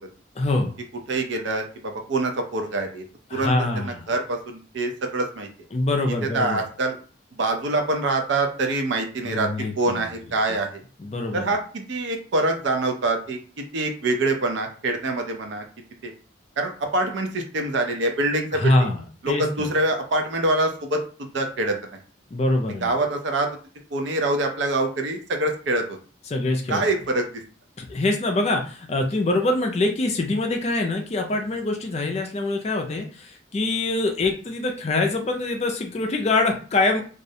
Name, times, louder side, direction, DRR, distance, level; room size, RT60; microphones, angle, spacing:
voice 1, 0.4-0.8 3.3-4.1 5.7-6.6 9.2-10.3 11.0-11.5 18.5-19.7 22.3-22.9 26.3-26.9 27.8-37.0, left 2 dB, 35° left, 3 dB, 0.4 m, -24 dB
voice 2, 1.1-3.0 3.3-5.5 6.1-7.0 7.3-9.5 9.8-10.8 11.3-13.4 13.7-15.6 16.0-16.1 16.6-18.8 19.2-21.8 22.8-23.5 23.9-26.0 26.7-27.4, right 2 dB, 70° right, 4 dB, 0.5 m, -25 dB
2.4 x 2.0 x 2.7 m, 0.39 s
head